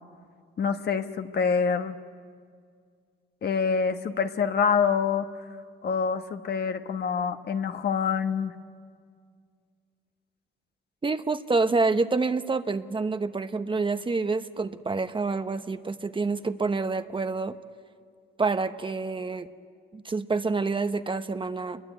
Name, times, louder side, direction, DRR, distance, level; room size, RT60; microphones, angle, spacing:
voice 1, 0.6-2.0 3.4-5.3 5.8-8.6, left 6 dB, 55° left, 7 dB, 1.3 m, -26 dB
voice 2, 11.0-17.5 18.4-19.5 19.9-21.8, right 3 dB, 25° right, 9 dB, 1.0 m, -27 dB
28.5 x 22.0 x 9.4 m, 2.1 s
cardioid pair, 90°, 20 cm